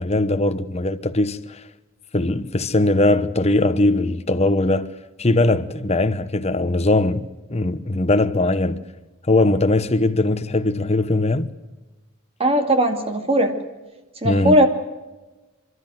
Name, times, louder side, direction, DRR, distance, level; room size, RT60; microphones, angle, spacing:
voice 1, 0.0-1.6 2.1-4.9 5.2-8.8 9.3-11.5 14.2-14.7, left 2 dB, 30° left, 1.0 m, -20 dB
voice 2, 12.4-13.5 14.2-14.7, right 1 dB, 30° right, 2.4 m, -18 dB
29.0 x 13.0 x 7.8 m
head